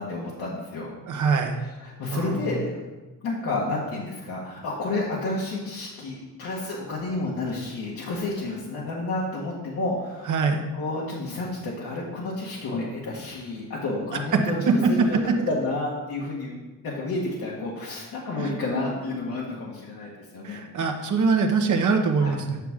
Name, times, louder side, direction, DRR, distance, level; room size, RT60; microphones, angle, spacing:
voice 1, 0.0-0.9 1.5-2.8 3.2-15.2 15.5-20.6 22.2-22.3, left 2 dB, 80° left, -5 dB, 1.6 m, -30 dB
voice 2, 1.1-1.6 2.1-2.4 10.3-10.7 14.3-14.4 18.4-18.5 20.4-22.6, right 5 dB, 60° right, 4 dB, 1.1 m, -23 dB
9.1 x 6.1 x 3.7 m, 1.2 s
cardioid pair, 110°, 35 cm